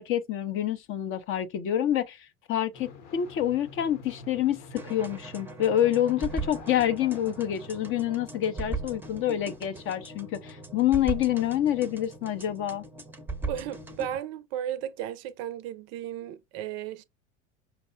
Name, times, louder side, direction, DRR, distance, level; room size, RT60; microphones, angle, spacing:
voice 1, 0.0-12.8, left 11 dB, 35° left, 0.5 m, -27 dB
sound 1, 2.7-8.1, left 3 dB, 65° left, 1.0 m, -49 dB
sound 2, 4.8-14.2, right 2 dB, 5° right, 0.7 m, -39 dB
voice 2, 13.5-17.0, right 10 dB, 40° right, 0.5 m, -35 dB
5.6 x 2.0 x 2.5 m
figure-of-eight pair, 80°, 38 cm